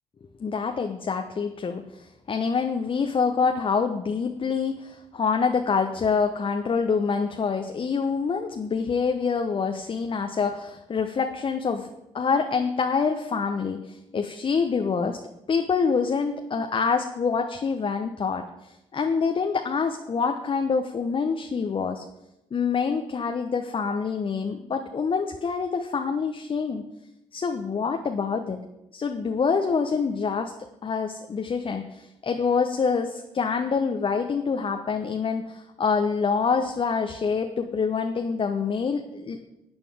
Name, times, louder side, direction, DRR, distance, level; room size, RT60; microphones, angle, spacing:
voice 1, 0.4-11.9 12.1-15.2 15.5-22.0 22.5-26.9 27.3-28.6 28.9-30.5 30.8-39.4, left 5 dB, 35° left, 5 dB, 0.9 m, -26 dB
14.0 x 8.9 x 3.5 m, 0.93 s
figure-of-eight pair, 40°, 15 cm